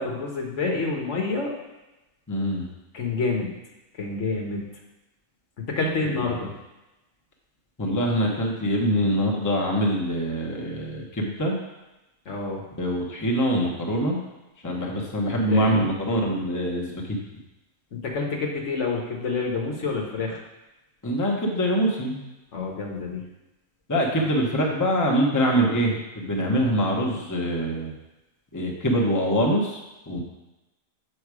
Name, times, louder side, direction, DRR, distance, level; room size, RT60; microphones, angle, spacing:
voice 1, 0.0-1.5 2.9-3.5 4.0-4.7 5.6-6.5 12.3-12.6 15.3-15.9 17.9-20.4 22.5-23.2, left 3 dB, 60° left, 0 dB, 1.3 m, -28 dB
voice 2, 2.3-2.7 6.0-6.4 7.8-11.6 12.8-14.2 14.6-17.2 21.0-22.2 23.9-27.9 28.5-29.8 30.1-30.2, equal, 15° left, -1 dB, 0.9 m, -24 dB
6.8 x 5.4 x 4.8 m, 1.0 s
omnidirectional pair, 1.5 m